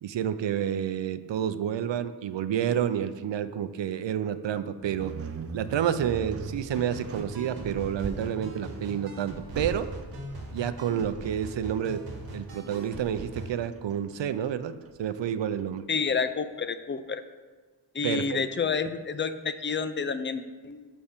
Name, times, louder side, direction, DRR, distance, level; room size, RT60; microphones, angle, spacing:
voice 1, 0.0-5.1 5.5-9.9 10.5-12.0 12.3-14.7 15.0-15.8 18.0-18.4, right 9 dB, 90° right, 12 dB, 0.5 m, -29 dB
sound 1, 4.8-16.0, right 5 dB, 35° right, 0.4 m, -41 dB
sound 2, 6.7-13.5, right 1 dB, 60° right, 1.6 m, -41 dB
voice 2, 15.9-17.2 17.9-20.9, left 5 dB, 30° left, 11 dB, 0.4 m, -29 dB
5.7 x 5.6 x 6.6 m, 1.4 s
wide cardioid pair, 115°, 42 cm